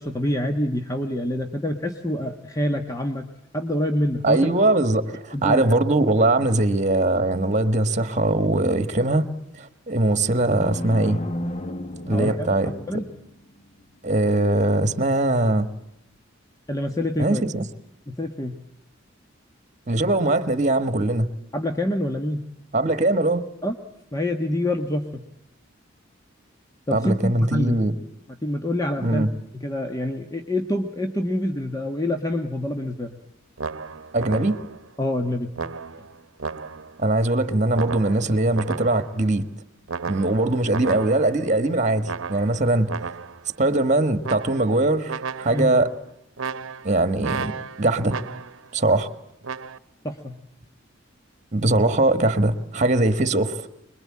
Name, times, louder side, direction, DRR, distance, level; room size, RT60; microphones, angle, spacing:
voice 1, 0.0-3.3 3.5-4.5 5.3-5.6 12.1-13.1 16.7-17.4 18.1-18.6 21.5-22.4 23.6-23.7 24.1-25.2 26.9-27.8 28.3-29.2 29.5-33.1 35.0-35.5 45.5-45.7 50.0-50.4, left 1 dB, 20° left, 1.3 m, -26 dB
voice 2, 4.2-9.3 9.6-11.2 12.1-12.7 14.0-15.7 17.2-17.6 19.9-21.3 22.7-23.4 26.9-27.9 29.0-29.3 34.1-34.6 37.0-39.5 40.1-42.9 43.6-45.9 46.8-47.5 47.8-48.2 48.7-49.1 51.5-53.7, right 2 dB, 40° right, 1.5 m, -21 dB
sound 1, 10.3-13.3, left 1 dB, 35° left, 1.4 m, -33 dB
sound 2, 33.6-34.9 35.6-37.0 37.7-39.2 39.9-41.5 42.0-43.5 44.2-44.8 45.1-45.8 46.4-48.7 49.4-49.8, right 5 dB, 85° right, 0.9 m, -33 dB
25.0 x 22.0 x 8.6 m
head